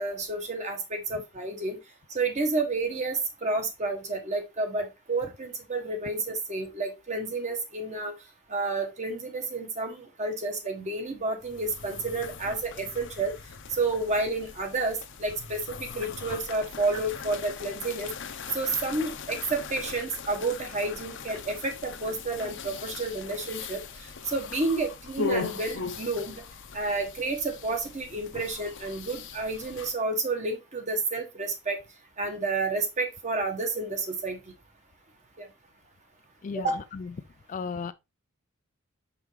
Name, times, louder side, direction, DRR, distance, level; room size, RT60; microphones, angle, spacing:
voice 1, 0.0-1.8 2.1-8.1 8.5-13.3 13.7-18.1 18.5-23.8 24.3-26.4 26.7-31.8 32.2-34.4 35.4-35.5 36.5-36.8, right 3 dB, 35° right, 1.3 m, -30 dB
sound 1, 11.4-29.9, left 5 dB, 60° left, 0.7 m, -39 dB
voice 2, 37.5-37.9, left 5 dB, 40° left, 0.3 m, -33 dB
5.8 x 5.4 x 3.1 m
head